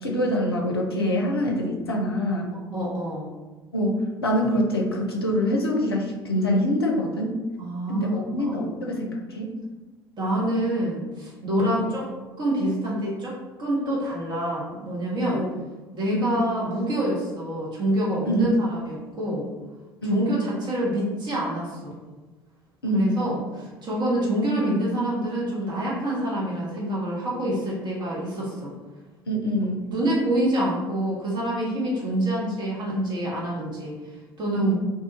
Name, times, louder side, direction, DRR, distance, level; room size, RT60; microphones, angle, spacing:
voice 1, 0.0-2.5 3.7-7.3 7.9-9.5 11.6-11.9 15.3-15.5 16.1-16.4 18.3-18.5 20.0-20.3 22.8-23.2 29.3-29.9 34.6-34.7, equal, 80° left, 0 dB, 0.5 m, -25 dB
voice 2, 2.7-3.3 7.6-8.2 8.4-8.6 10.2-12.1 12.4-15.4 15.9-19.5 20.1-22.0 22.9-28.7 29.9-34.7, right 1 dB, 35° right, -5 dB, 1.2 m, -26 dB
2.6 x 2.4 x 3.9 m, 1.2 s
figure-of-eight pair, 60°, 13 cm